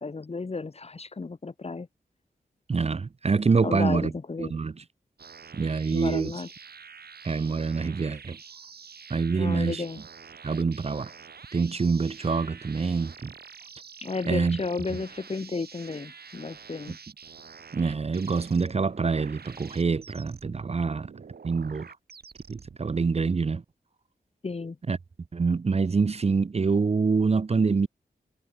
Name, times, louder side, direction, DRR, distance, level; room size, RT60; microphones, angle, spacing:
voice 1, 0.0-1.9 3.6-4.6 5.9-6.5 9.4-10.0 14.0-17.0 24.4-24.8, left 4 dB, 40° left, 2.1 m, -33 dB
voice 2, 2.7-4.1 4.4-4.8 5.5-6.3 7.2-8.4 9.1-9.8 10.4-11.1 11.5-13.3 14.3-14.6 17.7-21.1 21.4-22.0 22.5-23.6 24.9-25.0 25.3-27.9, right 4 dB, 40° right, 0.8 m, -26 dB
sound 1, 5.2-22.8, right 6 dB, 80° right, 7.9 m, -47 dB
wide cardioid pair, 115°, 16 cm